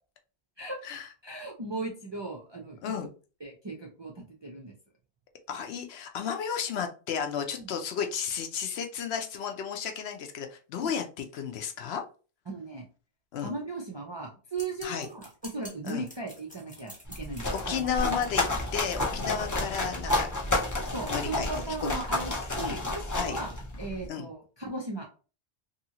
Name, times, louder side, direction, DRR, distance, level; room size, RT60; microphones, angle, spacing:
voice 1, 1.2-2.8 3.4-4.7 7.6-7.7 10.8-10.9 12.5-12.8 13.4-18.0 20.9-23.5 23.8-25.1, right 2 dB, 40° right, -1 dB, 0.4 m, -37 dB
voice 2, 5.5-12.0 13.3-13.5 14.8-15.1 15.8-16.1 17.7-20.3 21.1-21.5 21.8-21.9 22.6-22.8 23.1-23.4 24.1-24.3, left 7 dB, 70° left, 5 dB, 0.8 m, -33 dB
sound 1, 14.5-19.6, left 1 dB, 10° left, 0.8 m, -49 dB
sound 2, 17.1-24.0, left 2 dB, 25° left, 0.4 m, -31 dB
2.8 x 2.7 x 2.7 m, 0.36 s
omnidirectional pair, 1.1 m